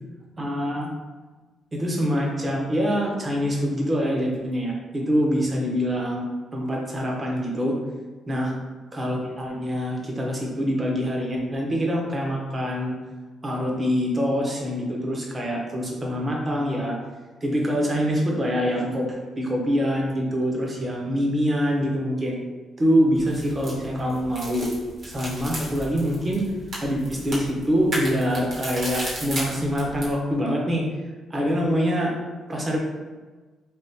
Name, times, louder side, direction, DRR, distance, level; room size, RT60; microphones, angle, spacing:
voice 1, 0.4-0.9 1.7-6.3 6.5-7.8 8.3-8.5 8.9-13.0 13.4-17.0 17.4-22.4 22.8-24.7 25.0-26.4 26.8-30.8 31.3-32.1 32.5-32.8, equal, 25° right, -1 dB, 0.8 m, -25 dB
sound 1, 23.2-30.1, right 1 dB, 55° right, 1.2 m, -35 dB
3.4 x 2.5 x 2.8 m, 1.3 s
cardioid pair, 90°, 0 cm